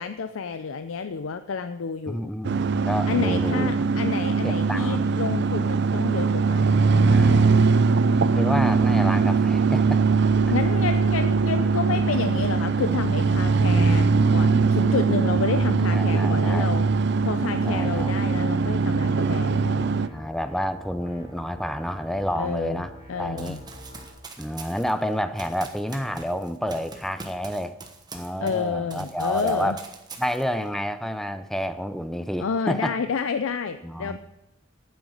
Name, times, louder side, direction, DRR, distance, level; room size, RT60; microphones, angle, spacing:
voice 1, 0.0-2.3 3.1-7.4 10.5-14.1 14.3-16.8 17.2-20.0 22.4-23.6 28.4-29.8 32.4-34.2, left 5 dB, 85° left, 10 dB, 0.5 m, -30 dB
voice 2, 2.1-3.7 4.4-5.0 7.1-7.7 8.3-10.0 15.4-16.7 17.6-18.2 20.1-23.6 24.4-27.8 28.1-29.8 30.2-33.0 33.8-34.2, equal, ahead, 11 dB, 0.5 m, -29 dB
sound 1, 2.4-20.1, right 4 dB, 55° right, 0.4 m, -21 dB
sound 2, 8.3-24.1, equal, 30° left, 3.9 m, -45 dB
Run, 23.4-28.6 28.9-30.7, right 3 dB, 20° right, 1.1 m, -43 dB
9.3 x 8.0 x 6.5 m, 0.96 s
head